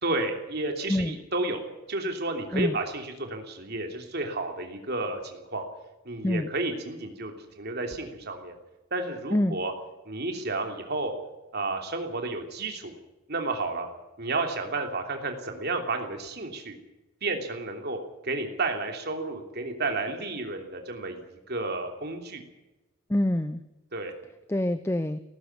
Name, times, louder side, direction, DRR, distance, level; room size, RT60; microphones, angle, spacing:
voice 1, 0.0-1.6 1.9-5.6 6.0-8.6 8.9-9.7 10.1-11.1 11.5-12.9 13.3-13.9 14.2-16.8 17.2-18.0 18.2-21.2 21.5-22.4 23.9-24.1, right 2 dB, 50° right, 4 dB, 3.1 m, -31 dB
voice 2, 23.1-23.6 24.5-25.2, left 1 dB, 10° left, 12 dB, 0.6 m, -26 dB
18.0 x 15.0 x 9.6 m, 1.0 s
head